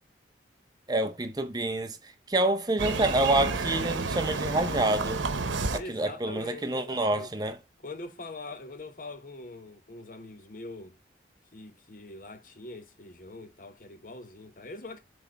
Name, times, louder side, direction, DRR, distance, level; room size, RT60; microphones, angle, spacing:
voice 1, 0.9-5.2 5.7-7.6, right 2 dB, 20° right, 0.6 m, -27 dB
sound 1, 2.8-5.8, right 3 dB, 90° right, 0.9 m, -30 dB
voice 2, 4.4-4.9 5.7-7.3 7.8-11.0 11.5-15.0, left 2 dB, 45° left, 1.0 m, -43 dB
7.7 x 3.5 x 4.5 m
head